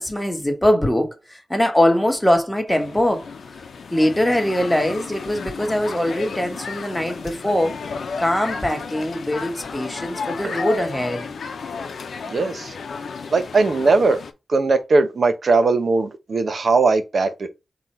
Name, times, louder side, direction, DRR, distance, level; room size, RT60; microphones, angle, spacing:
voice 1, 0.0-3.3 3.9-7.8 8.2-11.3, left 1 dB, 10° left, 1.1 m, -22 dB
sound 1, 2.7-14.3, left 5 dB, 80° left, 0.7 m, -33 dB
voice 2, 12.3-12.7 13.3-14.2 14.5-17.5, right 3 dB, 60° right, 0.9 m, -19 dB
3.9 x 3.0 x 4.4 m
cardioid pair, 75°, 0 cm